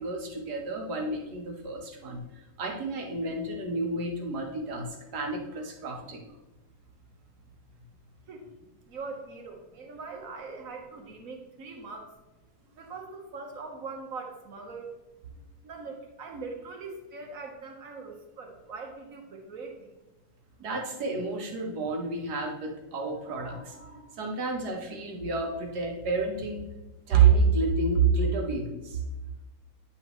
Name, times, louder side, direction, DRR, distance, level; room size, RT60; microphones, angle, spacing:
voice 1, 0.0-2.2 2.6-6.2 20.6-26.7 27.1-29.0, right 5 dB, 90° right, 1 dB, 1.7 m, -28 dB
voice 2, 8.9-12.1 12.8-14.9 15.6-19.9, right 4 dB, 60° right, 2 dB, 1.5 m, -41 dB
10.0 x 5.6 x 3.1 m, 1.0 s
omnidirectional pair, 1.7 m